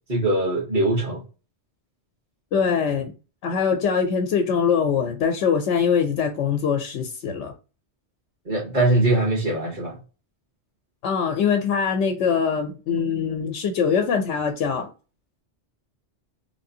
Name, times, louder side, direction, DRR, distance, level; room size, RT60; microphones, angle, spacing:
voice 1, 0.1-1.2 8.5-10.0, right 2 dB, 40° right, 1.2 m, -22 dB
voice 2, 2.5-3.1 3.4-7.5 11.0-14.9, left 6 dB, 85° left, 0.9 m, -23 dB
3.3 x 3.2 x 2.6 m
omnidirectional pair, 1.2 m